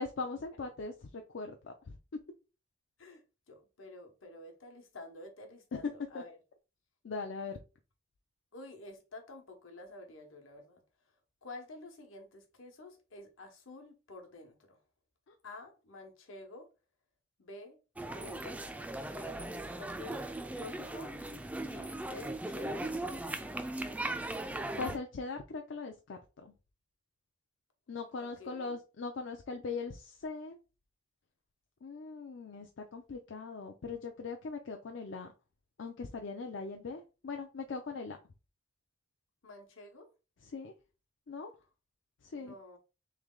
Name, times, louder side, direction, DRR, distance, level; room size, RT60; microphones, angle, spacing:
voice 1, 0.0-2.0 5.7-5.8 6.1-6.2 7.0-7.6 24.8-26.5 27.9-30.6 31.8-35.3 35.8-38.2 40.4-40.7 41.3-41.5 42.2-42.5, left 4 dB, 65° left, 0.5 m, -40 dB
voice 2, 3.0-6.4 8.5-10.8 11.4-14.8 15.4-16.7 17.4-18.6 19.0-19.4 19.7-20.2 20.5-21.1 21.7-23.0 28.2-28.8 39.4-40.1 42.3-42.8, left 2 dB, 80° left, 1.1 m, -50 dB
sound 1, 18.0-25.0, right 2 dB, 5° right, 0.3 m, -38 dB
3.3 x 3.1 x 3.7 m
head